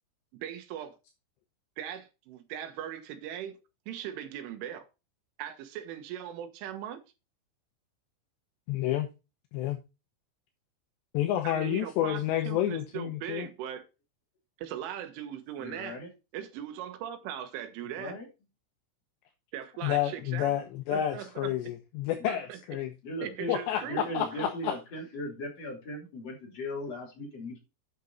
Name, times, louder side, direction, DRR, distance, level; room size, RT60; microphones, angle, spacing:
voice 1, 0.3-1.0 1.8-3.6 3.9-4.9 5.4-7.0 11.4-13.8 14.6-16.0 16.3-18.2 19.5-20.6 20.9-21.5 22.3-22.6 23.2-24.0 24.3-24.4, right 10 dB, 75° right, 3.7 m, -39 dB
voice 2, 8.7-9.1 9.5-9.8 11.1-13.5 19.8-22.9 23.5-24.7, left 12 dB, 80° left, 2.6 m, -30 dB
voice 3, 15.6-16.1 18.0-18.3 22.2-22.3 23.0-23.5 23.8-27.6, equal, 40° left, 3.1 m, -38 dB
9.4 x 6.2 x 4.0 m
omnidirectional pair, 6.0 m